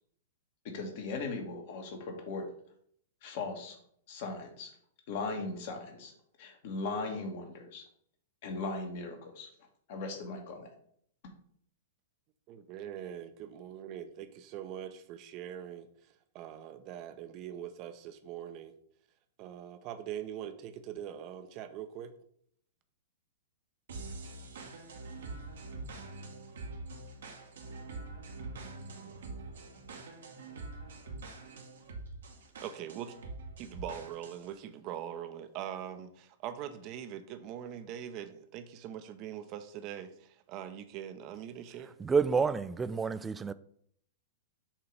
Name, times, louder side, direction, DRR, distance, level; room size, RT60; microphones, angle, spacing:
voice 1, 0.6-2.5 3.2-3.8 4.1-4.7 5.1-6.1 6.4-7.8 8.4-9.5 9.9-10.7, left 3 dB, 55° left, 1.6 m, -38 dB
voice 2, 12.5-18.7 19.4-22.1 32.6-33.1 33.6-42.0, right 10 dB, 40° right, 0.7 m, -42 dB
sound 1, 23.9-34.5, right 3 dB, 70° right, 1.2 m, -45 dB
voice 3, 42.0-43.5, right 5 dB, 15° right, 0.3 m, -29 dB
7.3 x 2.9 x 5.0 m
hypercardioid pair, 110°, 0 cm